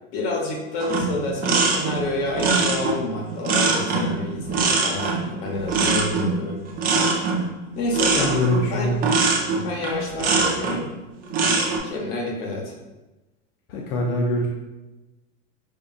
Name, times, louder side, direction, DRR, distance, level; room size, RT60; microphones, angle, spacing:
voice 1, 0.1-6.6 7.8-8.3 8.7-8.9 9.6-10.9 11.8-12.7, left 2 dB, 55° left, 1 dB, 1.0 m, -28 dB
sound 1, 0.8-10.8 11.2-11.8, right 4 dB, 25° right, 0.5 m, -22 dB
voice 2, 8.1-9.0 13.7-14.5, left 1 dB, 35° left, -1 dB, 0.4 m, -23 dB
5.1 x 2.4 x 2.3 m, 1.1 s
supercardioid pair, 135°, 36 cm